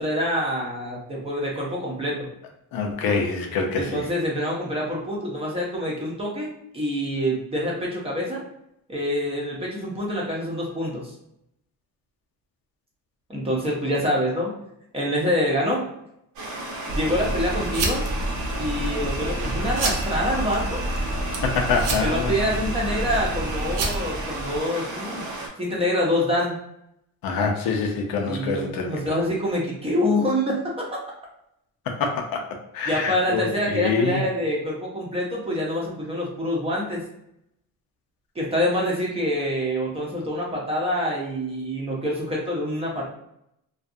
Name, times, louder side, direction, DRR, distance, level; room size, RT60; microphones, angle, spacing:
voice 1, 0.0-2.3 3.8-8.4 8.9-11.1 13.3-14.5 14.9-15.8 16.9-18.1 18.6-20.8 22.0-25.2 25.6-26.6 28.2-30.8 32.9-37.0 38.4-43.1, equal, 15° right, -4 dB, 0.6 m, -26 dB
voice 2, 2.7-4.0 21.3-22.3 27.2-29.0 31.9-32.4 32.7-34.2, left 4 dB, 85° left, 2 dB, 0.6 m, -25 dB
Stream, 16.4-25.5, right 2 dB, 85° right, 0.9 m, -34 dB
sound 1, 16.9-24.6, right 2 dB, 60° right, 0.6 m, -28 dB
2.4 x 2.3 x 2.6 m, 0.77 s
cardioid pair, 160°, 35 cm